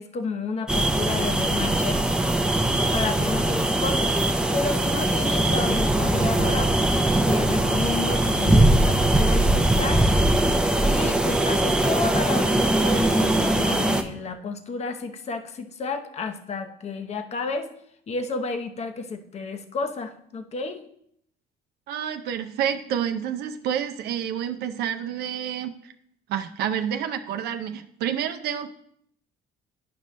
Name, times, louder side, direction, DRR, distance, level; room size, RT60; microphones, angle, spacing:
voice 1, 0.0-2.0 2.9-4.1 4.5-6.7 7.2-10.1 10.9-17.7 18.1-20.9, left 4 dB, 40° left, 7 dB, 0.8 m, -31 dB
sound 1, 0.7-14.0, right 1 dB, 5° right, 0.5 m, -21 dB
voice 2, 21.9-25.9 26.3-28.7, right 9 dB, 75° right, 8 dB, 0.5 m, -29 dB
10.5 x 5.3 x 3.1 m, 0.69 s
cardioid pair, 110°, 17 cm